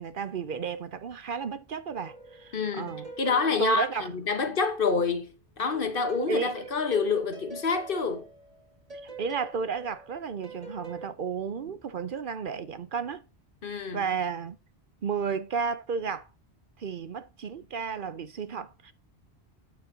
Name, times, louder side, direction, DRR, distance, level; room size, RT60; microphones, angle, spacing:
voice 1, 0.0-3.1 3.6-4.1 6.3-6.5 9.2-13.2 13.9-14.6 15.0-16.3 16.8-18.9, right 5 dB, 60° right, 0.8 m, -32 dB
sound 1, 1.9-4.8 5.7-11.1, right 1 dB, 35° right, 2.1 m, -45 dB
voice 2, 2.5-8.3 13.6-14.0, left 4 dB, 55° left, 1.3 m, -28 dB
9.0 x 7.1 x 2.8 m
omnidirectional pair, 1.1 m